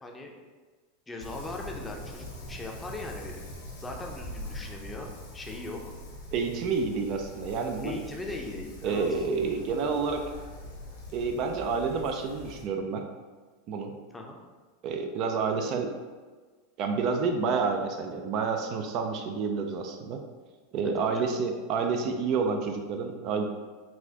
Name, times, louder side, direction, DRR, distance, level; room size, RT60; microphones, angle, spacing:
voice 1, 1.1-3.4 3.8-5.8 7.8-9.0 14.1-14.4 21.0-21.3, left 2 dB, 15° left, 1 dB, 0.5 m, -39 dB
Wind, 1.2-12.6, left 1 dB, 80° left, 0.9 m, -43 dB
voice 2, 6.3-8.0 8.8-10.2 11.1-13.1 13.7-13.9 14.8-15.9 16.8-20.2 20.7-23.5, right 5 dB, 50° right, 4 dB, 0.4 m, -29 dB
4.0 x 2.3 x 2.8 m, 1.4 s
hypercardioid pair, 100°, 0 cm